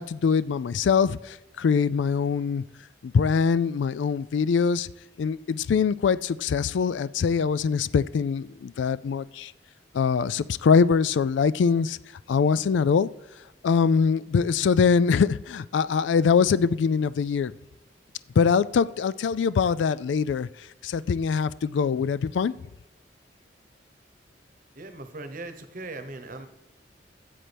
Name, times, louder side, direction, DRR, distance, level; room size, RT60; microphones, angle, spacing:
voice 1, 0.0-2.6 3.0-4.9 5.2-9.5 9.9-12.0 12.3-13.1 13.6-17.5 18.4-22.5, left 6 dB, 85° left, 0.3 m, -23 dB
voice 2, 24.8-26.5, right 2 dB, 50° right, 1.0 m, -39 dB
15.0 x 7.6 x 3.4 m
head